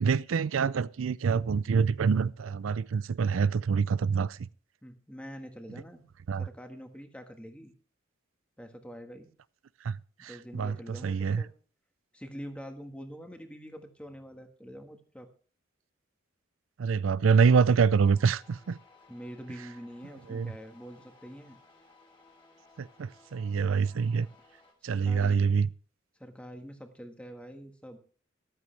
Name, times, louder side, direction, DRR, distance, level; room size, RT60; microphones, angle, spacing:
voice 1, 0.0-4.4 6.3-6.5 9.8-11.4 16.8-18.8 20.3-20.5 22.8-24.3 24.8-25.7, right 5 dB, 85° right, 0.4 m, -26 dB
voice 2, 4.8-6.0 6.4-7.7 8.6-9.3 10.2-11.5 12.1-15.3 19.1-21.6 24.2-24.3 24.9-25.5 26.2-28.0, equal, 5° left, 1.5 m, -45 dB
sound 1, 17.9-24.7, left 3 dB, 25° left, 3.0 m, -59 dB
13.5 x 12.5 x 3.3 m
head